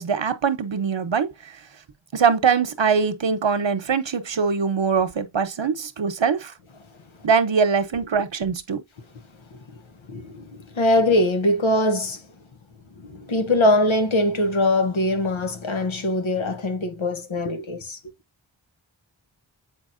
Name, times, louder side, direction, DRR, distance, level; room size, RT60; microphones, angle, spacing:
voice 1, 0.0-1.5 2.1-6.5 7.2-8.8, right 6 dB, 70° right, 1.0 m, -22 dB
voice 2, 10.1-10.5 10.8-12.2 13.0-18.0, left 1 dB, 80° left, 1.1 m, -22 dB
7.9 x 4.6 x 2.6 m
wide cardioid pair, 45°, 46 cm